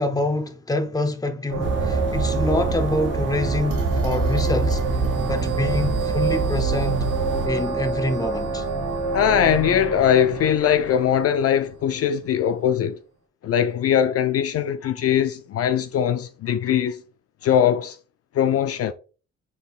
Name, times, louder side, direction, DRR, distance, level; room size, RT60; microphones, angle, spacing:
voice 1, 0.0-4.8 5.3-7.0 7.4-8.6, left 2 dB, 10° left, 0.7 m, -26 dB
sound 1, 1.5-12.1, right 3 dB, 75° right, 2.0 m, -27 dB
sound 2, 1.6-7.5, right 4 dB, 40° right, 0.6 m, -27 dB
voice 2, 9.1-13.0 13.4-17.0 17.4-18.0 18.3-18.9, left 9 dB, 50° left, 0.4 m, -21 dB
5.4 x 4.1 x 2.4 m
cardioid pair, 90°, 30 cm